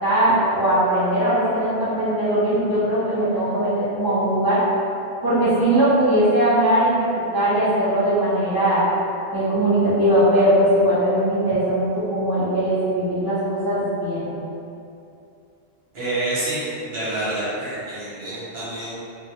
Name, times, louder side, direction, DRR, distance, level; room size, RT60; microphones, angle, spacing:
voice 1, 0.0-4.6 5.2-7.1 7.3-8.8 9.3-14.3, right 1 dB, 25° right, -12 dB, 0.6 m, -20 dB
voice 2, 15.9-19.0, right 2 dB, 75° right, -10 dB, 1.1 m, -27 dB
2.2 x 2.2 x 2.8 m, 2.7 s
omnidirectional pair, 1.0 m